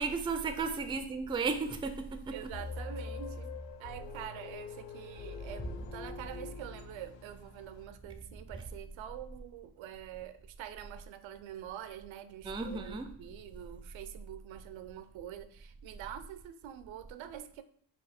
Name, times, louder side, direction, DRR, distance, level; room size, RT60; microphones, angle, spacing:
voice 1, 0.0-2.3 12.4-13.1, right 4 dB, 10° right, 0.4 m, -34 dB
voice 2, 2.3-3.5 3.8-17.6, right 10 dB, 65° right, 0.5 m, -46 dB
sound 1, 2.5-7.5, left 4 dB, 60° left, 0.7 m, -44 dB
Bowed string instrument, 5.6-12.0, equal, 20° left, 0.7 m, -52 dB
4.1 x 2.3 x 4.3 m
cardioid pair, 75°, 50 cm